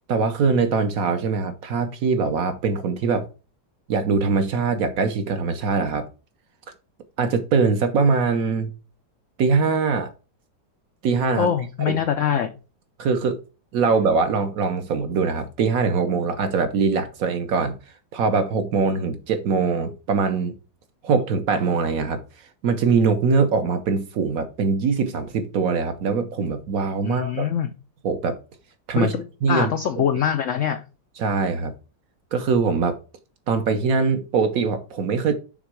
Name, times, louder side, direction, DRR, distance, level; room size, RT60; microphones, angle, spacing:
voice 1, 0.1-3.3 3.9-6.1 7.2-8.7 9.4-10.1 11.0-11.5 11.9-12.0 13.0-13.4 13.7-17.8 18.1-20.5 21.0-22.2 22.6-27.4 28.0-28.4 28.9-29.1 29.4-29.7 31.2-31.7 32.3-33.0 33.5-35.3, right 5 dB, 65° right, 1.0 m, -22 dB
voice 2, 11.3-12.5 27.0-27.7 28.9-30.8, left 8 dB, 80° left, 0.6 m, -24 dB
6.0 x 3.5 x 4.6 m
omnidirectional pair, 1.9 m